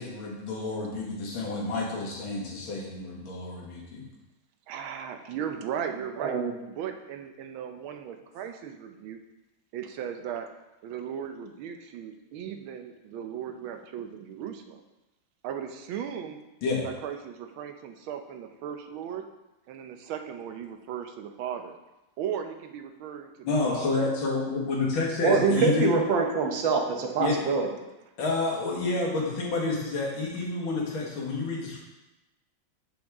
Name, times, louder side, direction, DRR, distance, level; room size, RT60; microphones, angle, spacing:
voice 1, 0.0-4.1 16.6-16.8 23.4-26.0 27.2-27.4 28.2-31.8, left 3 dB, 90° left, -2 dB, 2.4 m, -29 dB
voice 2, 4.7-6.4 6.7-9.2 9.7-10.5 10.8-14.8 15.4-16.4 16.8-19.2 19.7-21.7 22.2-23.3 23.7-24.1, right 8 dB, 90° right, 6 dB, 1.5 m, -37 dB
voice 3, 6.2-6.5 25.2-27.7, right 5 dB, 75° right, 3 dB, 1.6 m, -24 dB
7.7 x 6.3 x 3.5 m, 1.0 s
omnidirectional pair, 2.2 m